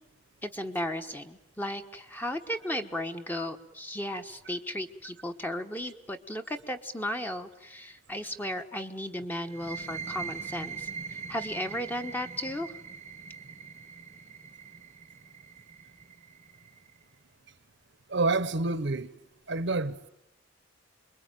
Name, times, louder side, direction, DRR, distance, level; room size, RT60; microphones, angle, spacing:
voice 1, 0.4-12.7, left 1 dB, 10° left, 1.2 m, -35 dB
sound 1, 9.5-16.9, right 5 dB, 35° right, 0.9 m, -42 dB
voice 2, 18.1-19.1 19.5-20.1, right 3 dB, 55° right, 1.0 m, -28 dB
27.5 x 22.0 x 9.1 m
head